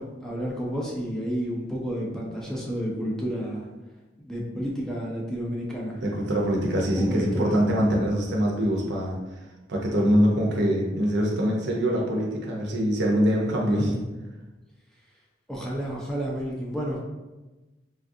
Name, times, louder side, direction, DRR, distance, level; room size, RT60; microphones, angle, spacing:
voice 1, 0.0-3.7 4.2-6.0 7.0-7.6 15.5-17.0, equal, 5° left, -4 dB, 0.4 m, -31 dB
voice 2, 6.0-9.2 9.7-14.0, equal, 65° right, -1 dB, 0.6 m, -24 dB
3.3 x 2.3 x 2.6 m, 1.1 s
head